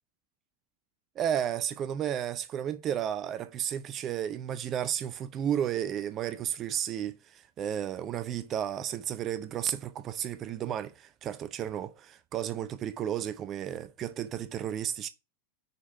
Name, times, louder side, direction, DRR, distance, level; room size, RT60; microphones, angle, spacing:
voice 1, 1.2-15.1, right 10 dB, 30° right, 0.6 m, -33 dB
6.7 x 5.4 x 5.7 m
figure-of-eight pair, 90°, 0 cm